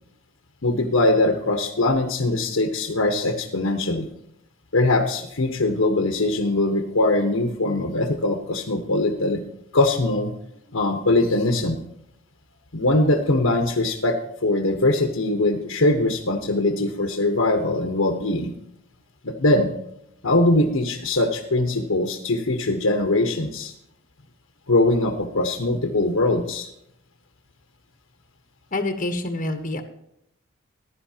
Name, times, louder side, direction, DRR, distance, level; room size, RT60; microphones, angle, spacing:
voice 1, 0.6-4.1 4.7-9.4 9.7-10.3 10.7-11.8 12.7-18.5 19.2-19.7 20.2-23.7 24.7-26.7, left 2 dB, 80° left, 4 dB, 1.2 m, -21 dB
voice 2, 28.7-29.8, left 2 dB, 40° left, 6 dB, 1.1 m, -26 dB
15.5 x 11.0 x 2.9 m, 0.77 s
head